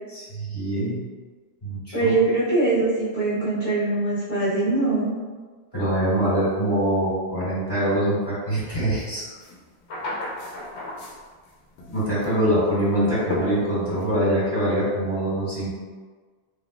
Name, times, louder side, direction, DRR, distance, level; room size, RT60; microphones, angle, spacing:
voice 1, 0.1-1.0 1.6-2.1 5.7-9.2 10.4-10.5 11.9-15.7, right 1 dB, 20° left, -12 dB, 1.4 m, -24 dB
voice 2, 1.9-5.1, right 2 dB, 35° right, -15 dB, 1.4 m, -22 dB
sound 1, 9.0-9.1 9.4-11.5 11.8-12.4 13.3-14.1, left 2 dB, 85° left, 0.9 m, -33 dB
3.7 x 2.7 x 2.3 m, 1.5 s
omnidirectional pair, 1.1 m